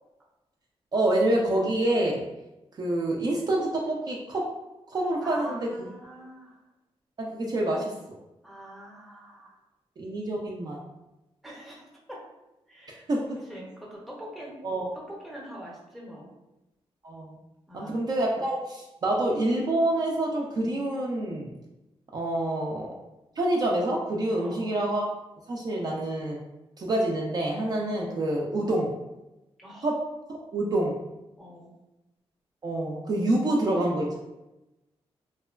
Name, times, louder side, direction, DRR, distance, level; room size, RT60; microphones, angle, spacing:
voice 1, 0.9-2.2 2.8-4.5 4.9-5.7 7.2-7.9 10.0-10.8 13.1-13.2 14.6-14.9 17.0-17.4 17.7-21.5 22.1-22.9 23.4-25.0 25.5-26.4 26.8-28.9 29.8-30.0 30.3-31.0 32.6-34.2, right 1 dB, 40° right, -2 dB, 0.4 m, -27 dB
voice 2, 5.2-6.6 8.4-9.5 11.4-12.2 12.7-13.1 13.5-14.6 14.9-16.3 17.7-18.0 24.3-24.8 29.6-29.9 31.4-31.7, equal, ahead, -4 dB, 0.6 m, -44 dB
2.9 x 2.1 x 2.3 m, 0.98 s
wide cardioid pair, 125°, 10 cm